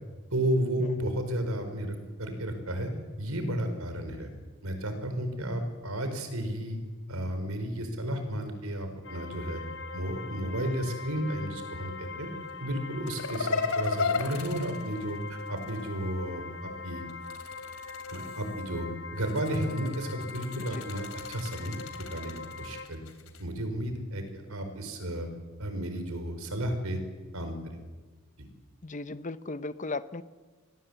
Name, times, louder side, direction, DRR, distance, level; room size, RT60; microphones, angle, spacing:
voice 1, 0.3-2.9 3.2-4.3 4.6-6.8 7.1-9.6 9.9-12.3 12.6-17.0 18.1-18.9 19.1-22.3 22.6-23.0 23.4-25.3 25.6-27.0 27.3-27.6 28.4-28.5, right 1 dB, 85° right, 7 dB, 4.7 m, -33 dB
sound 1, 9.0-22.9, left 4 dB, 65° left, 2.7 m, -42 dB
sound 2, 13.1-15.8 17.1-18.6 19.2-23.4, left 4 dB, 80° left, 3.0 m, -35 dB
voice 2, 28.8-30.2, left 3 dB, 35° left, 14 dB, 0.8 m, -36 dB
26.5 x 20.0 x 8.2 m, 1.4 s
head